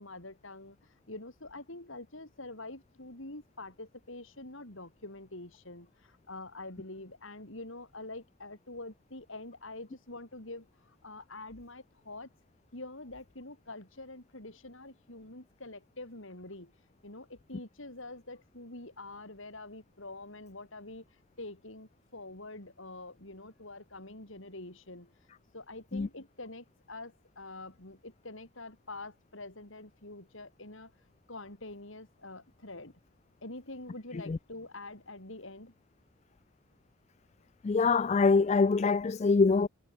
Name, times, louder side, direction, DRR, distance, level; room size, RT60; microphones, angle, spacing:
voice 1, 0.0-12.3 12.7-16.7 17.0-21.0 21.4-25.1 25.5-30.9 31.3-32.9 33.4-35.7, left 2 dB, 65° left, 4.3 m, -46 dB
voice 2, 37.6-39.7, left 4 dB, 30° left, 0.3 m, -24 dB
head